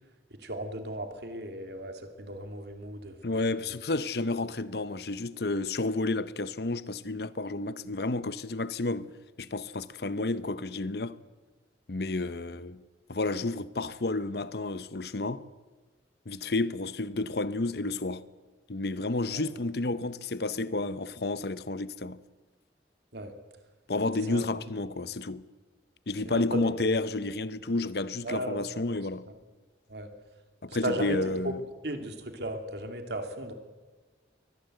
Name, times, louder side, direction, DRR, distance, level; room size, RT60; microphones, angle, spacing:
voice 1, 0.4-3.6 19.3-19.4 23.1-23.3 24.3-24.4 26.2-26.4 28.2-28.6 29.9-30.1 30.7-31.2 31.4-31.5 31.8-33.5, right 1 dB, 65° right, 2.8 m, -36 dB
voice 2, 3.2-9.1 9.4-11.2 11.9-12.8 13.1-15.4 16.3-18.3 18.7-22.2 23.9-25.5 26.1-29.3 30.6-31.6, left 2 dB, 60° left, 0.8 m, -31 dB
23.5 x 19.0 x 8.0 m
head